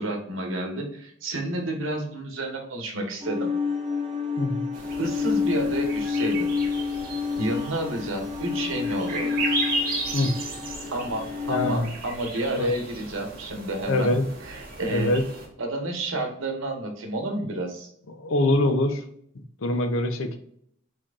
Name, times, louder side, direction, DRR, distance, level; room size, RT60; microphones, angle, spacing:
voice 1, 0.0-3.5 5.0-6.5 7.4-9.4 10.9-14.1 14.5-15.1 15.6-17.9, right 1 dB, 75° right, 3 dB, 1.2 m, -30 dB
sound 1, 3.2-11.8, left 5 dB, 25° right, 0.7 m, -29 dB
sound 2, 4.7-15.5, right 2 dB, 45° right, 1.4 m, -35 dB
voice 2, 11.5-11.9 12.6-12.7 13.9-14.2 14.9-15.2 18.1-19.0 19.3-20.4, left 1 dB, 80° left, 8 dB, 0.7 m, -24 dB
4.5 x 4.4 x 2.5 m, 0.67 s
head